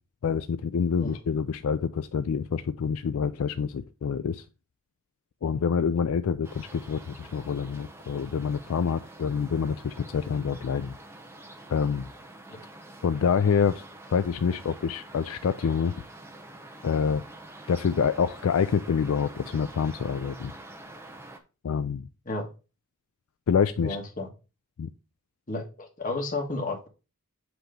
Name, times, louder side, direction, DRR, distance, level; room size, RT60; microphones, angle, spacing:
voice 1, 0.2-4.4 5.4-10.9 11.7-12.1 13.0-13.8 14.1-15.9 16.8-17.2 17.7-20.5 21.6-22.1 23.5-24.0 24.8-24.9, left 6 dB, 70° left, 0.4 m, -26 dB
sound 1, 6.4-21.4, right 2 dB, 10° right, 0.7 m, -47 dB
voice 2, 23.8-24.3 25.5-26.9, left 2 dB, 35° left, 1.4 m, -32 dB
8.0 x 3.1 x 5.1 m
head